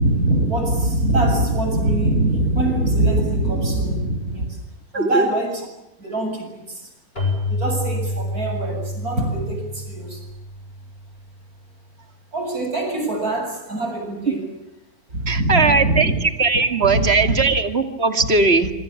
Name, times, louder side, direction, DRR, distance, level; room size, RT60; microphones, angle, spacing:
voice 1, 0.0-4.6 4.9-5.7 6.0-6.9 7.5-10.3 12.3-14.5 15.1-16.2 16.8-17.4, right 1 dB, 85° right, 4 dB, 8.0 m, -22 dB
voice 2, 4.9-5.3 15.3-18.7, right 3 dB, 45° right, 8 dB, 2.7 m, -19 dB
Keyboard (musical), 7.2-11.7, left 1 dB, 40° left, 8.5 m, -28 dB
26.5 x 25.5 x 7.3 m, 0.92 s
omnidirectional pair, 1.5 m